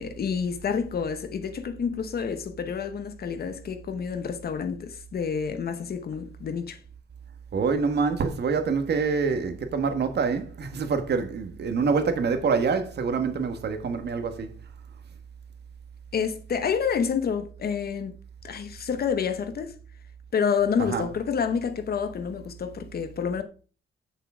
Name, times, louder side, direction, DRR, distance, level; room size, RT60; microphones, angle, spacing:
voice 1, 0.0-6.8 16.1-18.1 18.4-19.8 20.3-23.4, left 6 dB, 50° left, 0.9 m, -28 dB
voice 2, 7.5-14.5 20.9-21.1, right 5 dB, 55° right, 1.4 m, -26 dB
8.4 x 6.7 x 4.9 m
wide cardioid pair, 170°, 20 cm